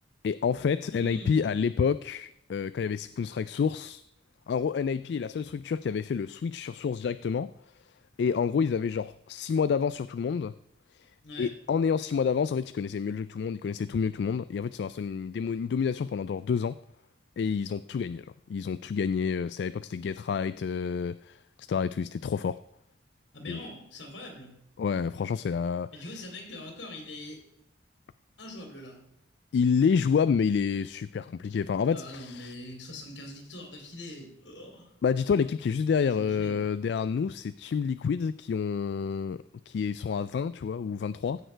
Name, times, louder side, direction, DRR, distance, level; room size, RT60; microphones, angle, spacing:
voice 1, 0.2-4.0 4.5-7.5 8.2-10.5 10.9-11.1 11.4-16.8 17.4-22.6 23.5-23.6 24.8-26.2 29.5-32.5 35.0-41.4, left 6 dB, 65° left, 0.3 m, -28 dB
voice 2, 0.8-1.6 11.2-11.5 23.3-24.6 25.9-27.5 28.4-29.0 31.9-34.9 35.9-36.6, left 1 dB, 80° left, 3.0 m, -43 dB
15.5 x 6.6 x 4.5 m
head